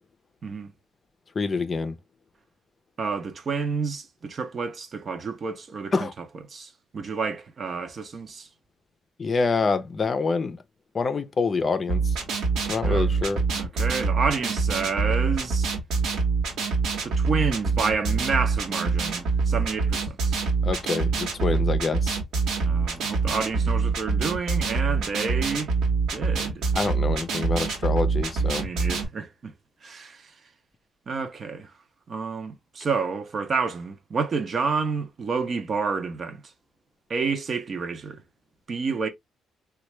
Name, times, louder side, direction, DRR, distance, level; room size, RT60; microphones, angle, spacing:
voice 1, 1.4-1.9 5.9-6.1 9.2-10.6 10.9-12.2 12.7-13.4 20.6-22.2 26.7-28.6, left 4 dB, 40° left, 0.5 m, -26 dB
voice 2, 3.0-8.5 12.8-13.1 13.5-15.7 17.0-20.4 22.6-25.7 26.1-26.7 28.4-29.5 29.8-30.3 31.1-31.7 32.1-36.4 37.1-38.2 38.7-39.1, right 5 dB, 45° right, 0.7 m, -29 dB
sound 1, 11.9-29.0, right 5 dB, 80° right, 1.1 m, -25 dB
3.3 x 2.3 x 3.0 m
cardioid pair, 90°, 0 cm